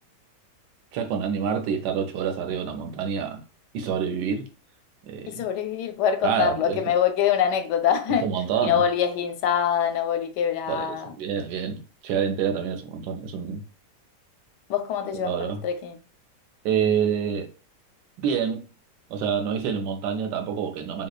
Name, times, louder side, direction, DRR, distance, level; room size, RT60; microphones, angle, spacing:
voice 1, 0.9-3.4 3.7-4.5 5.0-5.5 6.2-6.8 8.2-8.8 10.7-13.6 15.2-15.6 16.6-17.5 18.2-18.7 19.1-21.1, right 7 dB, 80° right, 1.3 m, -27 dB
voice 2, 5.3-8.3 8.6-11.2 14.7-16.0, left 8 dB, 80° left, 1.2 m, -24 dB
3.9 x 2.9 x 2.3 m
omnidirectional pair, 1.8 m